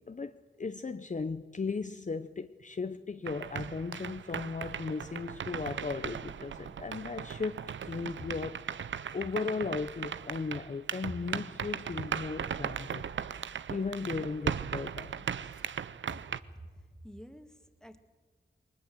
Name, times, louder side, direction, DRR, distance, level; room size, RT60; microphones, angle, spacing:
voice 1, 0.0-13.1 13.7-15.6, left 4 dB, 40° left, 0.8 m, -37 dB
sound 1, 3.3-16.4, right 8 dB, 80° right, 0.6 m, -38 dB
voice 2, 16.2-18.0, equal, 5° left, 2.2 m, -50 dB
21.0 x 20.0 x 7.9 m
cardioid pair, 50°, 19 cm